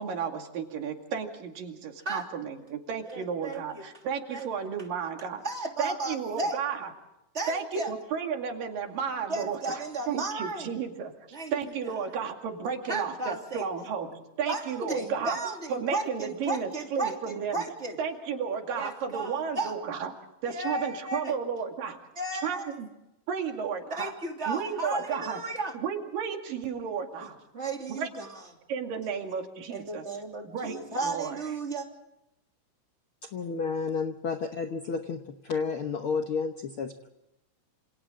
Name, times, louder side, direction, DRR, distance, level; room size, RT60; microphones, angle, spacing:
voice 1, 0.0-5.4 5.8-6.9 7.5-9.6 10.1-11.1 11.5-14.1 14.4-15.4 15.7-17.6 18.0-20.1 20.4-22.0 22.4-22.9 23.3-24.1 24.5-25.4 25.7-27.4 28.0-28.1 28.7-30.0 30.4-30.7 31.0-31.4, right 6 dB, 90° right, 4 dB, 4.0 m, -33 dB
voice 2, 3.0-3.8 4.3-4.5 5.4-6.6 7.3-7.9 9.3-10.8 11.3-11.9 12.9-13.7 14.5-18.0 18.7-19.7 20.5-21.3 22.1-22.7 23.9-25.7 27.2-28.5 29.7-31.9, right 2 dB, 20° right, 2 dB, 3.1 m, -34 dB
voice 3, 33.3-35.2 35.5-37.1, left 5 dB, 65° left, 6 dB, 1.3 m, -31 dB
27.5 x 27.5 x 3.8 m, 0.91 s
omnidirectional pair, 3.8 m